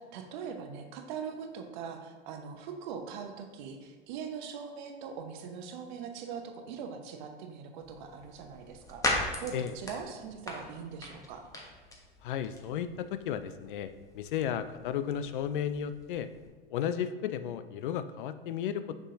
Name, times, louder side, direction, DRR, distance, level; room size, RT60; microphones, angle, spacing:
voice 1, 0.0-9.0 9.4-11.4, right 6 dB, 55° right, 5 dB, 0.9 m, -41 dB
sound 1, 7.8-16.5, left 1 dB, 10° left, 1.1 m, -40 dB
voice 2, 12.2-16.3 16.7-18.9, left 9 dB, 60° left, 11 dB, 0.5 m, -34 dB
6.2 x 6.1 x 2.8 m, 1.3 s
hypercardioid pair, 95°, 29 cm